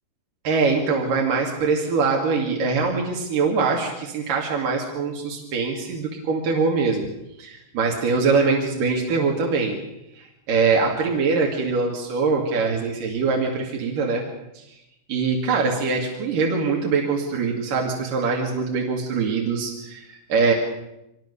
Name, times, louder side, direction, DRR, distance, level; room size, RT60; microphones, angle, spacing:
voice 1, 0.4-7.1 7.4-9.8 10.2-14.2 14.5-14.7 15.1-20.5, right 4 dB, 85° right, 0 dB, 4.0 m, -23 dB
24.0 x 21.0 x 6.9 m, 0.89 s
omnidirectional pair, 3.8 m